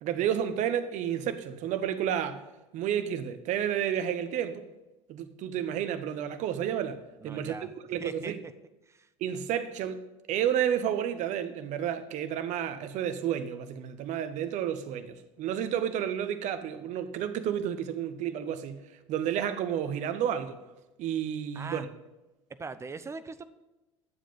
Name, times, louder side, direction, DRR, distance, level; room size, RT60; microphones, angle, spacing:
voice 1, 0.0-2.4 2.7-4.6 5.1-7.0 7.2-8.4 9.2-18.8 19.1-20.6 21.0-21.9, right 9 dB, 50° right, 1.0 m, -31 dB
voice 2, 7.2-7.7 8.0-8.5 8.9-9.1 21.5-21.8 22.6-23.4, right 4 dB, 15° right, 0.7 m, -40 dB
11.5 x 7.5 x 5.4 m
figure-of-eight pair, 70°, 16 cm